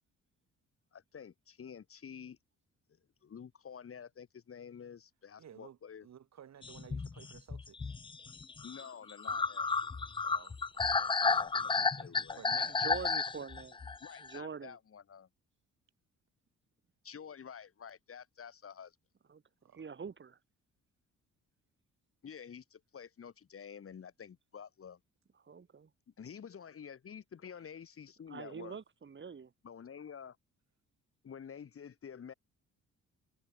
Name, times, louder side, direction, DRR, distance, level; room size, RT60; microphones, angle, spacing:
voice 1, 0.9-2.4 3.2-6.1 8.6-10.0 11.2-12.8 14.0-15.3 17.0-18.9 22.2-25.0 26.2-28.8 29.6-30.4 31.2-32.3, left 7 dB, 45° left, 3.2 m, -49 dB
voice 2, 5.4-7.9 10.2-12.8 19.6-19.8, right 9 dB, 60° right, 7.5 m, -55 dB
sound 1, 6.6-14.4, left 4 dB, 15° left, 0.5 m, -33 dB
voice 3, 12.7-13.8 14.2-14.8 19.3-19.4 19.7-20.4 25.4-25.9 28.3-29.5, right 6 dB, 40° right, 4.7 m, -44 dB
cardioid pair, 90°, 30 cm